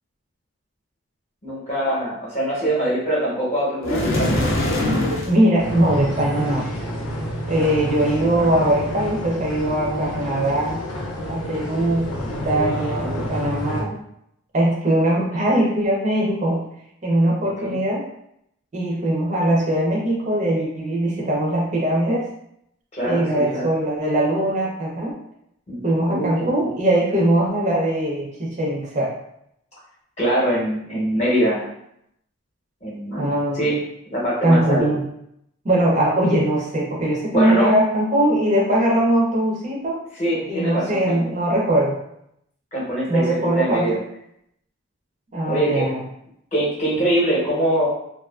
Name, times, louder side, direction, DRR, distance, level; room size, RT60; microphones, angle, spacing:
voice 1, 1.4-4.4 12.9-13.3 17.6-17.8 22.9-23.2 23.5-23.7 25.7-26.3 26.6-26.7 30.2-31.7 32.8-33.8 34.1-34.9 37.3-37.7 40.2-41.1 42.7-44.0 45.5-45.8 46.5-47.9, right 1 dB, 30° left, -6 dB, 0.8 m, -23 dB
sound 1, 3.8-5.4, left 1 dB, 60° left, 0.5 m, -21 dB
voice 2, 5.3-6.7 7.5-10.8 11.3-14.0 14.5-16.6 17.0-18.0 18.7-22.3 23.0-25.1 25.8-29.1 33.2-33.7 34.4-35.0 35.6-40.0 40.5-42.0 43.1-44.0 45.3-46.0, right 1 dB, 35° right, -3 dB, 0.5 m, -21 dB
sound 2, 5.6-13.8, equal, 90° left, 0.8 m, -29 dB
2.5 x 2.4 x 2.3 m, 0.76 s
head